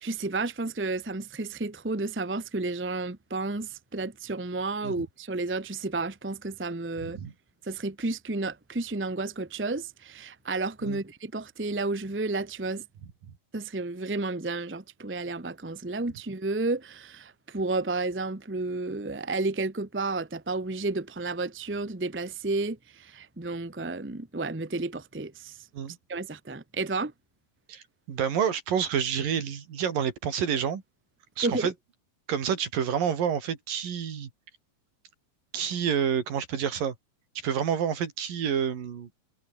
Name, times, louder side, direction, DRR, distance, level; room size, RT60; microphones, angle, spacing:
voice 1, 0.0-7.2 7.6-12.8 13.5-25.6 26.1-27.1 31.4-31.7, right 3 dB, 20° right, 0.3 m, -31 dB
voice 2, 27.7-30.8 31.4-31.7 32.3-34.3 35.5-36.9 37.4-39.1, right 8 dB, 75° right, 4.5 m, -28 dB
omnidirectional pair, 4.0 m